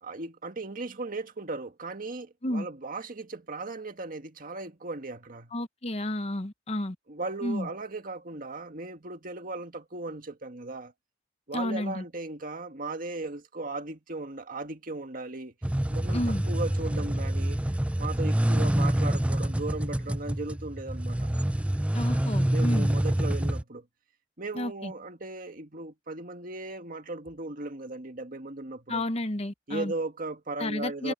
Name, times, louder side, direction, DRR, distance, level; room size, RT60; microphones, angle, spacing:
voice 1, 0.0-5.5 7.1-10.9 11.5-15.5 15.9-17.6 18.0-21.3 22.5-23.9 24.4-29.0 29.7-31.1, right 2 dB, 50° right, 1.9 m, -37 dB
voice 2, 5.5-7.0 7.4-7.7 11.5-12.0 16.1-16.4 21.9-22.9 24.5-24.9 28.9-29.9 30.6-31.1, left 1 dB, 35° left, 1.1 m, -31 dB
sound 1, 15.6-23.6, right 1 dB, 5° right, 0.4 m, -27 dB
head